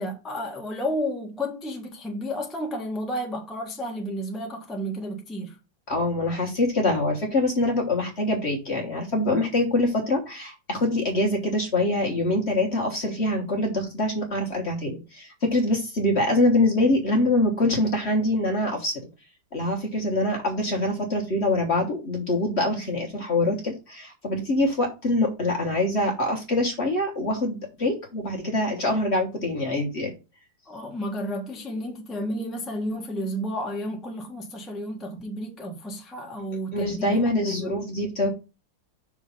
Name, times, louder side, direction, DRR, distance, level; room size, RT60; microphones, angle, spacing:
voice 1, 0.0-5.6 30.7-37.7, equal, ahead, 1.0 m, -32 dB
voice 2, 5.9-19.0 19.5-30.1 36.7-38.3, left 1 dB, 35° left, 1.4 m, -24 dB
6.0 x 3.8 x 5.4 m
omnidirectional pair, 2.1 m